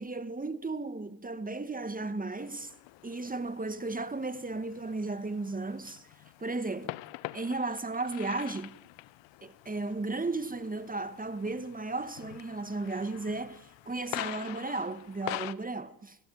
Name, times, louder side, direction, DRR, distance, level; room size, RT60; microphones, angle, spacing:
voice 1, 0.0-2.7 3.0-6.1 6.4-6.9 7.3-8.7 9.4-16.2, right 3 dB, 15° right, 2.3 m, -35 dB
sound 1, 2.4-15.5, left 19 dB, 60° left, 1.3 m, -45 dB
29.5 x 22.0 x 8.1 m
hypercardioid pair, 60°, 49 cm